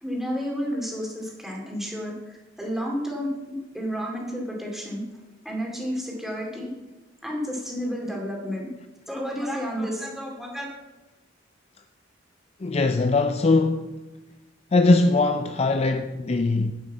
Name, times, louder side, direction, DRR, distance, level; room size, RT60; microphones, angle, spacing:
voice 1, 0.0-5.0 5.4-6.7 7.2-8.7 9.1-10.7, equal, ahead, 2.5 m, -31 dB
voice 2, 12.6-14.0 14.7-16.7, left 3 dB, 30° left, 0.4 m, -21 dB
10.0 x 6.2 x 8.3 m
head